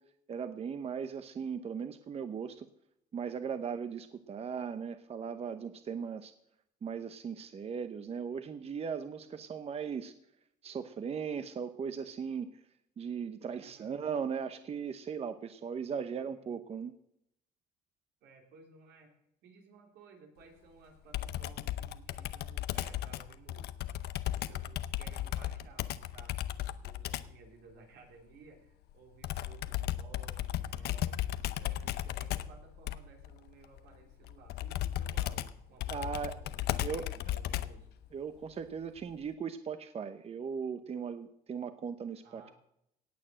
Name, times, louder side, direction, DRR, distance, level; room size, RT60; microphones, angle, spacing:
voice 1, 0.3-2.7 3.1-6.3 6.8-10.1 10.6-12.6 13.0-16.9 35.9-36.3 36.8-37.0 38.1-42.5, right 6 dB, 35° right, 9 dB, 0.9 m, -38 dB
voice 2, 13.5-14.0 15.9-16.5 18.2-19.1 19.4-23.9 24.3-37.9 42.2-42.5, right 4 dB, 85° right, 2 dB, 3.6 m, -58 dB
Computer keyboard, 21.1-27.4 29.2-37.9, left 13 dB, 75° left, 0.7 m, -36 dB
18.0 x 6.7 x 7.6 m, 0.76 s
cardioid pair, 110°, 17 cm